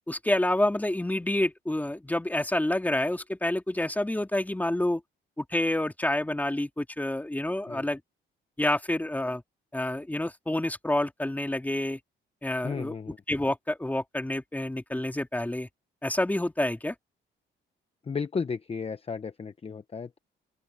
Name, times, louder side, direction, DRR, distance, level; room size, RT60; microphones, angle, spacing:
voice 1, 0.1-5.0 5.4-8.0 8.6-9.4 9.7-12.0 12.4-12.9 13.3-15.7 16.0-16.9, left 1 dB, 10° left, 2.6 m, -28 dB
voice 2, 12.6-13.2 18.0-20.2, left 5 dB, 30° left, 0.9 m, -34 dB
open air
cardioid pair, 90°, 20 cm